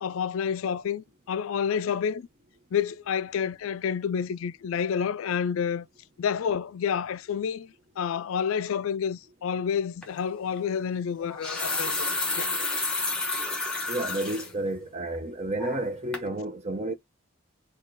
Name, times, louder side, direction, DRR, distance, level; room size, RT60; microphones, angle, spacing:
voice 1, 0.0-2.3 2.7-5.9 6.2-12.1 12.4-12.5, left 7 dB, 70° left, 0.3 m, -29 dB
sound 1, 10.0-10.2 11.2-14.5 15.0-15.1 15.6-15.9 16.1-16.3, left 3 dB, 5° left, 1.0 m, -30 dB
voice 2, 13.9-16.9, right 1 dB, 30° right, 0.8 m, -31 dB
4.3 x 2.4 x 4.5 m
head